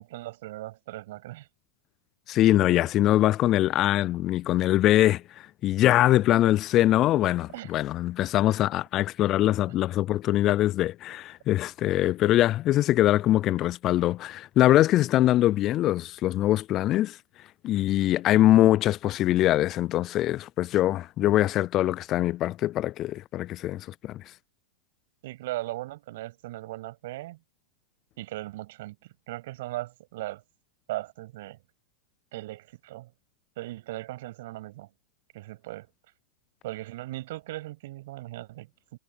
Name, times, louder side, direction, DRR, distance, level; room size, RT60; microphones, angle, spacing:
voice 1, 0.0-1.5 7.5-7.7 25.2-27.4 28.2-30.4 30.9-31.6 32.3-33.1 33.6-34.9 35.3-35.9 36.6-39.0, right 17 dB, 65° right, 7.2 m, -38 dB
voice 2, 2.3-17.2 17.6-24.2, left 14 dB, 35° left, 0.3 m, -23 dB
hypercardioid pair, 125°, 0 cm